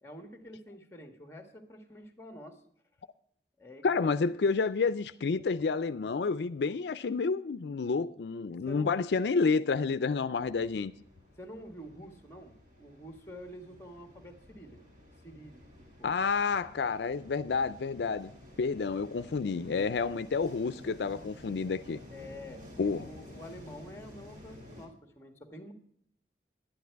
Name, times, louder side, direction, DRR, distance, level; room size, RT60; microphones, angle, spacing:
voice 1, 0.0-2.6 3.6-4.2 8.7-9.0 11.4-14.8 15.2-16.1 22.1-22.7 23.0-25.7, equal, 15° left, 1.6 m, -48 dB
voice 2, 3.8-10.9 16.0-18.3 18.6-22.0 22.8-23.1, left 4 dB, 75° left, 0.4 m, -29 dB
sound 1, 10.3-24.9, left 1 dB, 45° right, 3.9 m, -52 dB
11.5 x 11.0 x 4.6 m
head